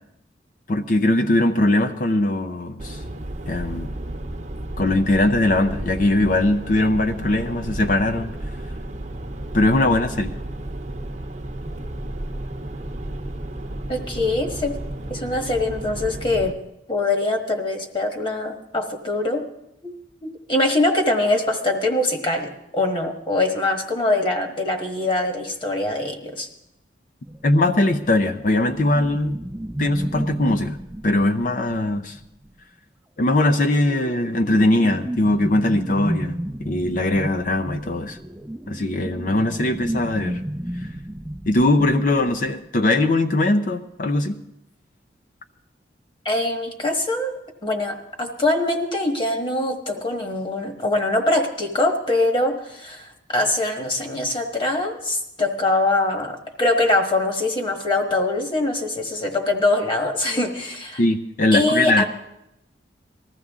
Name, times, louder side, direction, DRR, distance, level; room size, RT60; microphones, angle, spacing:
voice 1, 0.7-3.0 3.5-3.9 4.8-8.3 9.5-10.3 27.4-29.4 29.8-30.8 31.0-32.2 33.2-36.4 36.6-38.2 38.7-40.4 41.5-44.4 61.0-62.0, left 1 dB, 45° left, 8 dB, 0.6 m, -20 dB
sound 1, 2.8-16.5, right 1 dB, 40° right, 0.8 m, -32 dB
voice 2, 13.9-14.7 15.1-16.5 16.9-19.5 19.8-19.9 20.2-26.5 46.2-61.0 61.5-62.1, left 2 dB, 25° left, 3 dB, 1.4 m, -23 dB
sound 2, 27.3-32.5 33.4-42.7, right 1 dB, 10° right, 0.4 m, -32 dB
20.0 x 14.0 x 3.6 m, 0.83 s
head